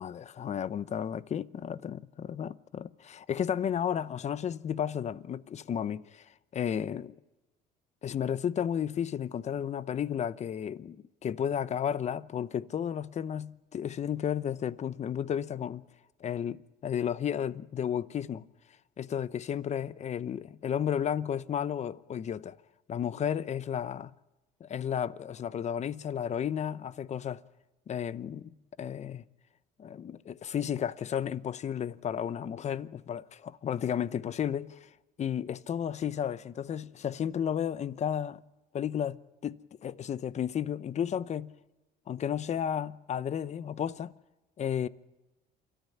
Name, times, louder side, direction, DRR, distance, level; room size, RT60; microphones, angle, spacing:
voice 1, 0.0-6.3 6.5-7.2 8.0-15.8 16.2-18.5 19.0-22.5 22.9-24.1 24.6-27.4 27.9-29.2 29.8-34.9 35.2-38.4 38.7-39.2 39.4-41.5 42.1-44.1 44.6-44.9, left 8 dB, 40° left, 0.8 m, -33 dB
28.5 x 14.0 x 9.3 m
cardioid pair, 110°, 17 cm